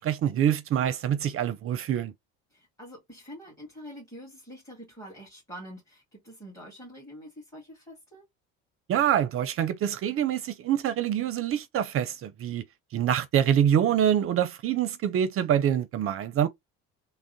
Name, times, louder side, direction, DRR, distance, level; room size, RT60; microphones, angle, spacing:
voice 1, 0.0-2.1 8.9-12.6 12.9-16.5, right 10 dB, 45° right, 0.5 m, -25 dB
voice 2, 2.5-8.3, equal, 10° left, 1.8 m, -46 dB
3.5 x 2.0 x 2.6 m
supercardioid pair, 95°, 32 cm